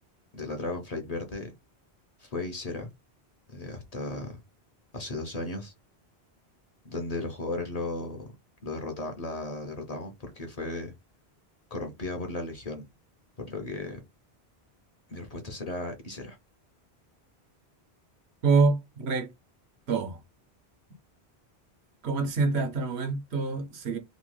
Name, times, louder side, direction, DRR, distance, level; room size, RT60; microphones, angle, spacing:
voice 1, 0.3-1.5 2.2-2.9 3.5-4.4 4.9-5.7 6.8-8.3 8.6-10.9 11.7-12.9 13.4-14.0 15.1-16.4, left 2 dB, 45° left, 0.6 m, -35 dB
voice 2, 18.4-19.3 19.9-20.2 22.0-24.0, right 4 dB, 80° right, 1.0 m, -26 dB
2.9 x 2.2 x 3.1 m
omnidirectional pair, 1.1 m